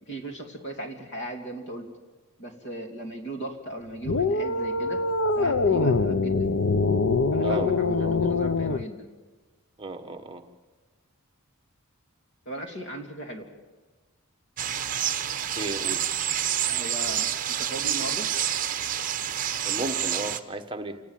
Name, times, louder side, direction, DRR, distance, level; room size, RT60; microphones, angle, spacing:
voice 1, 0.0-1.9 2.4-5.1 5.3-6.5 7.3-9.1 12.4-13.5 16.7-18.3, right 1 dB, 50° left, 4 dB, 2.9 m, -37 dB
sound 1, 4.0-8.8, left 3 dB, 70° left, 0.8 m, -24 dB
voice 2, 8.0-8.3 9.8-10.4 15.5-16.1 19.6-21.0, right 1 dB, 20° right, 5 dB, 1.3 m, -34 dB
sound 2, 14.6-20.4, right 10 dB, 35° right, 0.9 m, -28 dB
27.5 x 19.0 x 7.5 m, 1.3 s
head